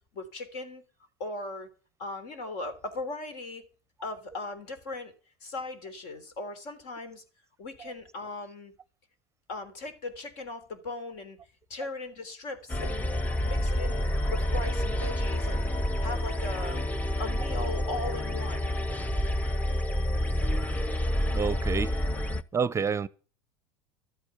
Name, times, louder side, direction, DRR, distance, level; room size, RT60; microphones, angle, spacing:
voice 1, 0.1-0.8 1.2-1.7 2.0-3.6 4.0-5.1 5.4-7.2 7.6-8.7 9.5-11.4 11.7-13.1 13.4-16.9 17.2-18.8, left 2 dB, 65° left, 3.6 m, -38 dB
sound 1, 12.7-22.4, left 1 dB, 10° left, 0.7 m, -28 dB
voice 2, 21.3-22.0 22.5-23.1, right 6 dB, 20° right, 0.6 m, -28 dB
13.0 x 8.8 x 6.9 m
supercardioid pair, 110°, 13 cm